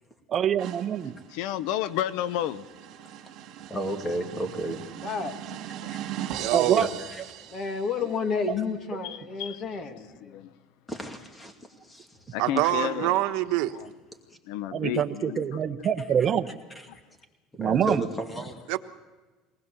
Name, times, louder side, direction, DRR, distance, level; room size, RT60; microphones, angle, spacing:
voice 1, 0.3-1.2 6.5-6.9 14.7-16.6 17.6-18.1, right 8 dB, 30° right, 8 dB, 1.0 m, -25 dB
sound 1, 0.6-8.2, right 11 dB, 55° right, 2.7 m, -40 dB
voice 2, 1.3-2.6 5.8-5.9 9.0-9.6 9.9-10.5 12.3-13.2 13.7-13.9 14.5-15.5, left 12 dB, 70° left, 16 dB, 0.7 m, -32 dB
voice 3, 3.7-4.8 6.8-7.2 10.9-12.1 12.6-12.7 17.6-18.6, right 1 dB, 10° left, 4 dB, 2.4 m, -33 dB
voice 4, 5.0-5.4 7.5-10.4, left 5 dB, 35° left, 6 dB, 2.1 m, -31 dB
voice 5, 6.4-6.8 12.4-13.7 18.7-18.8, right 16 dB, 70° right, 8 dB, 1.2 m, -25 dB
23.0 x 19.5 x 6.9 m, 1.3 s
cardioid pair, 145°, 0 cm